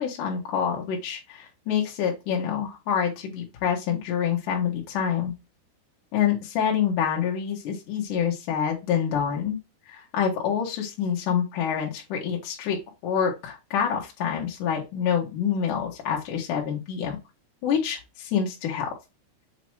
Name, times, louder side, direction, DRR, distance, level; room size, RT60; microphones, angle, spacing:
voice 1, 0.0-5.3 6.1-9.6 9.9-12.8 13.0-17.2 17.6-18.9, left 8 dB, 60° left, -1 dB, 2.5 m, -27 dB
7.4 x 2.9 x 4.6 m, 0.25 s
omnidirectional pair, 4.7 m